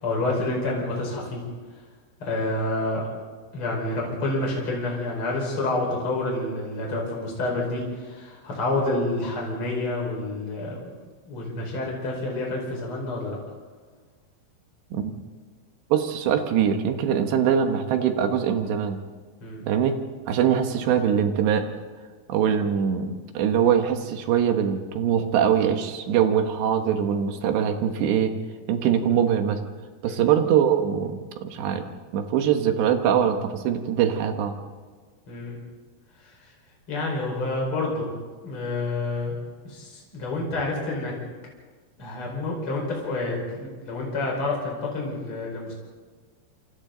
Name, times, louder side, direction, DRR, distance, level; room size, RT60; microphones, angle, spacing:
voice 1, 0.0-1.4 2.2-3.1 3.5-10.9 11.3-13.4 19.4-19.6 30.0-30.2 35.3-35.6 36.9-38.1 38.4-39.3 39.6-41.1 42.0-45.7, left 2 dB, 30° left, -1 dB, 5.6 m, -28 dB
voice 2, 15.9-19.0 19.7-20.0 20.3-21.7 22.3-28.3 28.7-29.6 30.0-31.9 32.1-34.6, right 8 dB, 80° right, 6 dB, 3.5 m, -22 dB
28.0 x 27.5 x 4.0 m, 1.5 s
omnidirectional pair, 5.0 m